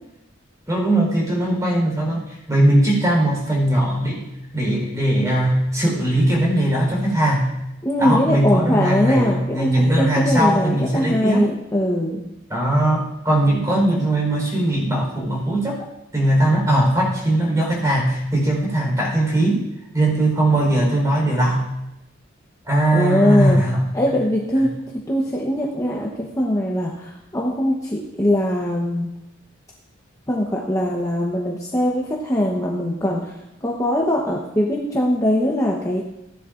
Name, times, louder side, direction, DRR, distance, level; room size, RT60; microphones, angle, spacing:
voice 1, 0.7-4.3 4.5-7.5 8.0-11.5 12.5-15.9 16.1-19.6 19.9-21.7 22.6-23.8, right 1 dB, 15° right, -2 dB, 4.1 m, -19 dB
voice 2, 7.8-12.2 22.9-23.6 23.9-24.7 25.1-29.1 30.3-33.3 33.6-36.0, left 1 dB, 15° left, -2 dB, 1.0 m, -21 dB
15.5 x 10.5 x 2.5 m, 0.91 s
head